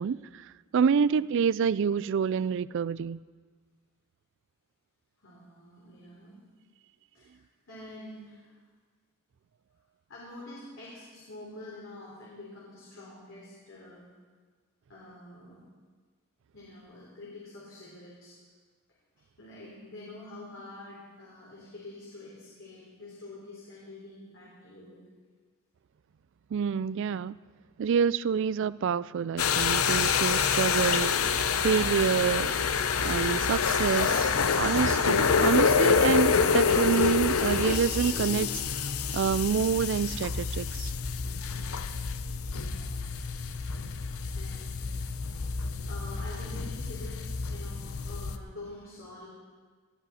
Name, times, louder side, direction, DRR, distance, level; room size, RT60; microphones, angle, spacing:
voice 1, 0.0-3.2 26.5-27.4 27.8-31.3 31.6-32.6 33.0-38.9 39.1-40.9, right 7 dB, 60° right, 0.3 m, -27 dB
voice 2, 5.2-6.4 7.1-8.6 10.1-14.0 14.9-15.6 16.5-18.4 19.4-25.0 42.5-43.1 44.3-44.9 45.4-45.5 45.9-49.3, left 2 dB, 60° left, 3.6 m, -47 dB
sound 1, 29.4-48.4, left 5 dB, 80° left, 0.8 m, -27 dB
19.0 x 14.0 x 4.2 m
head